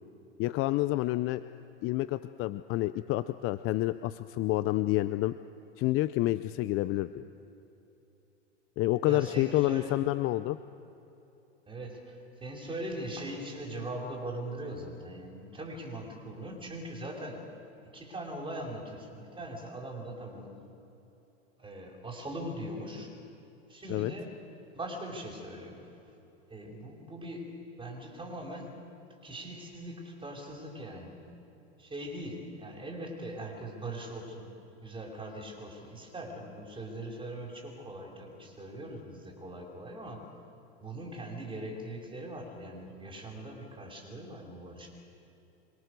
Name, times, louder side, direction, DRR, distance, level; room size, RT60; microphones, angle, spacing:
voice 1, 0.4-1.4 1.8-5.3 5.8-7.2 8.8-10.6 23.9-24.1, left 16 dB, 40° left, 13 dB, 0.7 m, -28 dB
voice 2, 9.0-9.9 11.7-17.4 17.9-20.6 21.6-23.1 23.7-24.4 24.7-25.8 26.5-28.8 29.2-31.1 31.8-34.5 34.8-40.3 40.8-44.9, right 1 dB, 15° right, 0 dB, 5.6 m, -41 dB
26.0 x 23.5 x 6.8 m, 3.0 s
hypercardioid pair, 100°, 35 cm